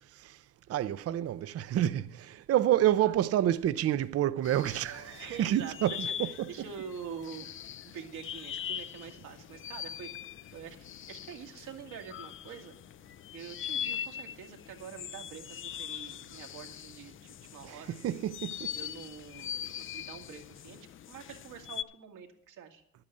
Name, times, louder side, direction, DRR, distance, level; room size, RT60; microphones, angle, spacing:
voice 1, 0.1-0.4 0.7-6.6 17.6-18.8, right 12 dB, 55° right, 0.5 m, -29 dB
sound 1, 4.4-21.8, left 9 dB, 45° left, 0.4 m, -42 dB
voice 2, 5.2-7.5 7.8-10.1 10.5-12.8 13.3-18.2 18.7-22.8, right 7 dB, 85° right, 1.9 m, -46 dB
11.0 x 8.7 x 6.5 m
cardioid pair, 90°, 30 cm